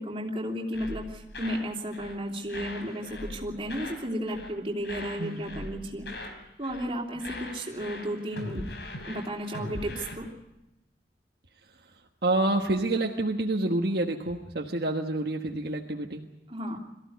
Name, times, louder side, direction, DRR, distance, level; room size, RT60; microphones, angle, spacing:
voice 1, 0.0-6.1 6.6-8.6 9.1-10.3 16.5-16.8, equal, 30° right, -1 dB, 3.1 m, -33 dB
sound 1, 0.7-1.7 1.9-2.2 2.5-4.0 4.3-4.6 4.8-6.4 6.6-6.9 7.2-10.1, left 1 dB, 70° left, 4.4 m, -40 dB
voice 2, 12.2-16.2, right 2 dB, 60° right, 1 dB, 1.4 m, -28 dB
22.5 x 15.0 x 9.4 m, 0.96 s
head